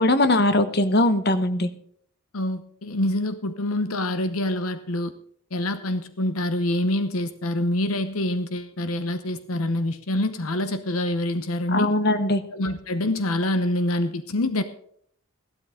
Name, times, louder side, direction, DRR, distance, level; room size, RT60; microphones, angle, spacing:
voice 1, 0.0-1.7 11.7-12.4, left 1 dB, 50° left, 10 dB, 1.0 m, -20 dB
voice 2, 2.3-5.1 5.5-11.9 12.5-14.6, left 1 dB, 80° left, 11 dB, 0.9 m, -26 dB
15.5 x 12.5 x 3.7 m, 0.62 s
head